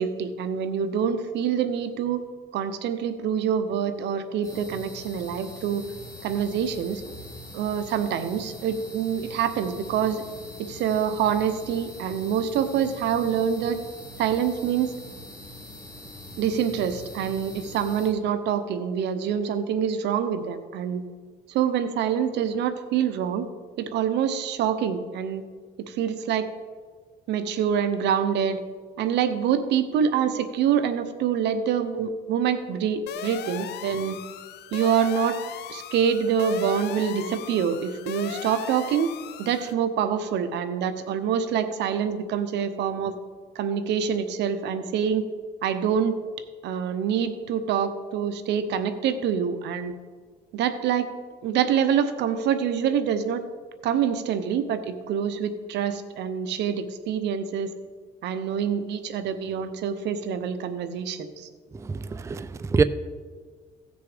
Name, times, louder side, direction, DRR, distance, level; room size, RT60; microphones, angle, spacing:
voice 1, 0.0-2.2 2.5-5.9 6.2-7.0 7.5-10.2 10.6-13.8 14.2-14.9 16.4-21.0 21.5-23.5 23.8-25.4 25.8-26.5 27.3-28.6 29.0-34.2 34.7-35.4 35.7-39.1 39.4-43.1 43.5-45.3 45.6-46.2 46.6-49.9 50.5-51.1 51.4-53.4 53.8-57.7 58.2-61.5, right 8 dB, 80° right, 9 dB, 1.0 m, -26 dB
sound 1, 4.4-18.1, left 1 dB, 20° left, 2.9 m, -43 dB
sound 2, 33.1-39.7, left 11 dB, 70° left, 0.6 m, -38 dB
voice 2, 61.7-62.8, right 4 dB, 15° right, 13 dB, 0.4 m, -25 dB
16.0 x 6.7 x 5.1 m, 1.6 s
cardioid pair, 105°, 18 cm